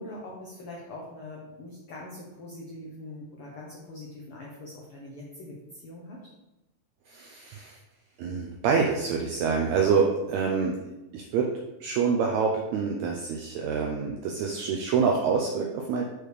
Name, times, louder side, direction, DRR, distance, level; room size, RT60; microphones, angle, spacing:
voice 1, 0.0-6.2, left 1 dB, 75° left, -3 dB, 1.3 m, -42 dB
voice 2, 7.1-7.8 8.2-11.5 11.8-16.0, right 5 dB, 90° right, 1 dB, 1.6 m, -26 dB
6.7 x 4.5 x 3.3 m, 0.95 s
omnidirectional pair, 3.8 m